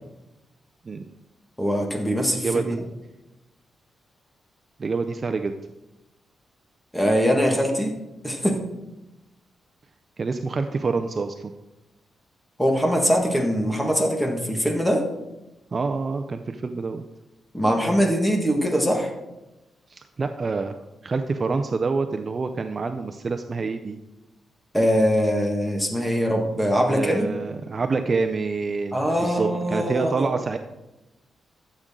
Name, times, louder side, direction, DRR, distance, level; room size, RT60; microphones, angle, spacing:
voice 1, 1.6-2.5 6.9-8.0 8.2-8.6 12.6-15.0 17.5-19.1 24.7-27.3 28.9-30.3, equal, 5° left, 1 dB, 1.7 m, -22 dB
voice 2, 2.4-2.8 4.8-5.6 10.2-11.6 15.7-17.0 19.9-20.8 21.0-24.0 26.9-30.6, right 4 dB, 35° right, 8 dB, 0.5 m, -27 dB
13.0 x 7.7 x 3.7 m, 0.98 s
wide cardioid pair, 130°, 0 cm